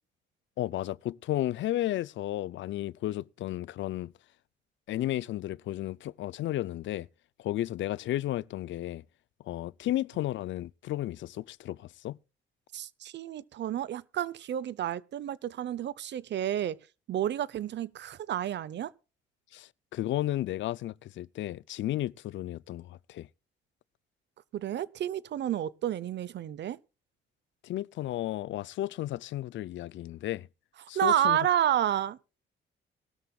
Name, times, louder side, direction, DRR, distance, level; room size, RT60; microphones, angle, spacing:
voice 1, 0.6-4.1 4.9-7.1 7.4-9.0 9.5-12.2 19.5-23.3 27.6-30.5 30.9-31.4, left 14 dB, 70° left, 0.5 m, -33 dB
voice 2, 12.7-16.8 17.1-18.9 24.5-26.8 30.9-32.2, right 11 dB, 65° right, 0.8 m, -30 dB
19.5 x 13.0 x 2.4 m
cardioid pair, 90°, 20 cm